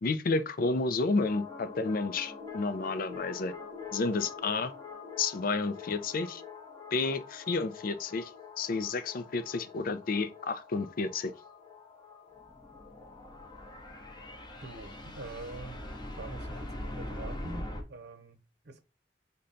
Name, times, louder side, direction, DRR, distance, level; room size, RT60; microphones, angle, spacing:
voice 1, 0.0-3.5 3.9-4.7 5.2-6.4 6.9-8.3 8.6-11.3, left 3 dB, 55° left, 0.4 m, -31 dB
sound 1, 1.1-17.8, left 3 dB, 25° left, 0.8 m, -44 dB
voice 2, 14.6-15.8 16.2-18.8, right 3 dB, 65° right, 0.7 m, -45 dB
5.3 x 2.2 x 3.7 m
head